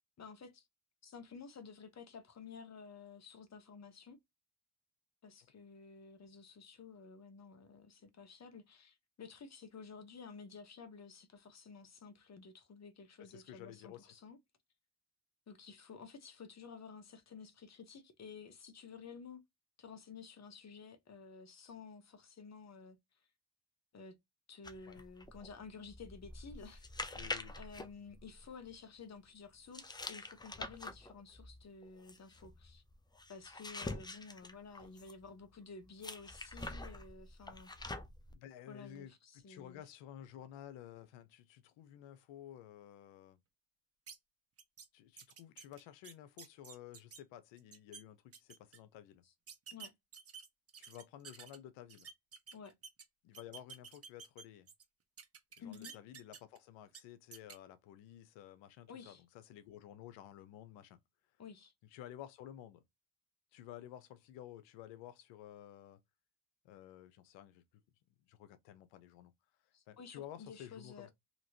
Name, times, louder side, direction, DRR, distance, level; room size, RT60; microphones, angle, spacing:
voice 1, 0.2-0.7 1.0-4.2 5.2-14.4 15.5-19.4 19.8-23.0 23.9-24.2 24.5-26.9 27.6-32.8 33.3-37.7 38.7-39.8 49.7-49.9 52.5-52.7 55.6-55.9 58.9-59.2 61.4-61.7 69.7-71.1, left 5 dB, 35° left, 1.0 m, -52 dB
voice 2, 13.2-14.1 24.9-25.0 27.1-27.6 38.3-43.4 44.9-49.2 50.8-52.1 53.2-54.7 55.6-61.0 61.9-62.8 63.5-66.0 66.6-67.6 68.2-69.3 69.9-71.1, left 11 dB, 80° left, 0.8 m, -53 dB
sound 1, 24.6-28.8 29.7-35.3 36.0-38.3, left 2 dB, 10° left, 0.5 m, -46 dB
sound 2, 44.1-44.2 44.6-44.9 45.2-47.2 47.6-48.0 48.3-48.8 49.5-51.6 51.9-53.0 53.3-54.8 55.2-56.6 56.9-57.0 57.3-57.6, right 6 dB, 30° right, 0.9 m, -52 dB
3.0 x 2.9 x 2.7 m
supercardioid pair, 70°, 44 cm